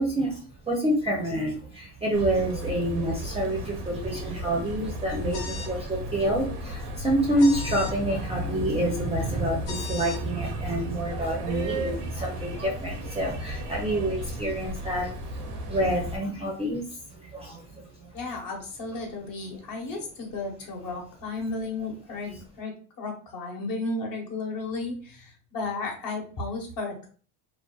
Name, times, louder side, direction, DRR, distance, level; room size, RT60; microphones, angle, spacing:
voice 1, 0.0-15.1 15.7-16.8 17.1-18.1, right 1 dB, 15° right, -1 dB, 0.5 m, -28 dB
sound 1, 2.1-16.2, right 1 dB, 85° right, 0.8 m, -34 dB
sound 2, 5.3-5.8 7.4-7.9 9.7-10.2, left 5 dB, 80° left, 0.7 m, -37 dB
voice 2, 18.1-27.1, left 3 dB, 50° left, 0 dB, 1.1 m, -34 dB
2.6 x 2.2 x 2.3 m, 0.40 s
supercardioid pair, 95°, 45 cm